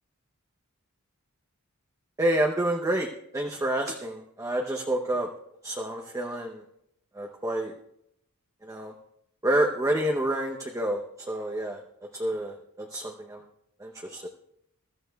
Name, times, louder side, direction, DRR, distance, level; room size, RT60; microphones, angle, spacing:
voice 1, 2.2-5.3 5.6-6.6 7.1-7.7 8.6-8.9 9.4-11.8 12.1-13.4 13.8-14.3, right 1 dB, 15° right, 2 dB, 0.7 m, -28 dB
22.5 x 12.5 x 2.3 m, 0.78 s
head